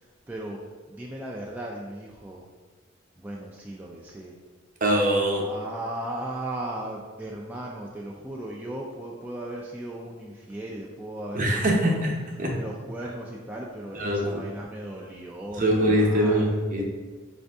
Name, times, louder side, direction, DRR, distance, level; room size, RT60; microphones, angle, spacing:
voice 1, 0.3-0.6 0.9-2.4 3.2-4.3 5.4-12.0 12.6-16.6, right 1 dB, 10° right, -3 dB, 0.3 m, -37 dB
voice 2, 4.8-5.4 11.3-12.1 12.4-12.6 13.9-14.4 15.6-16.8, right 1 dB, 45° right, 0 dB, 0.7 m, -23 dB
5.0 x 2.6 x 3.4 m, 1.4 s
head